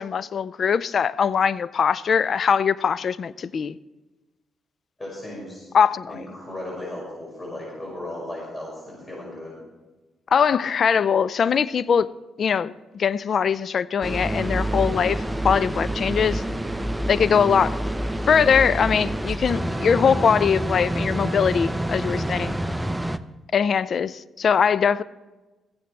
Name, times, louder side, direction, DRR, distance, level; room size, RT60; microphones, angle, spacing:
voice 1, 0.0-3.8 5.7-6.2 10.3-12.1 12.4-16.4 17.1-17.8 18.3-22.5 23.5-25.0, left 7 dB, 55° left, 0.4 m, -21 dB
voice 2, 5.0-5.7 6.1-9.6, left 1 dB, 25° left, 5.7 m, -36 dB
sound 1, 14.0-23.2, right 1 dB, 10° right, 0.7 m, -27 dB
16.0 x 14.5 x 3.3 m
hypercardioid pair, 45°, 0 cm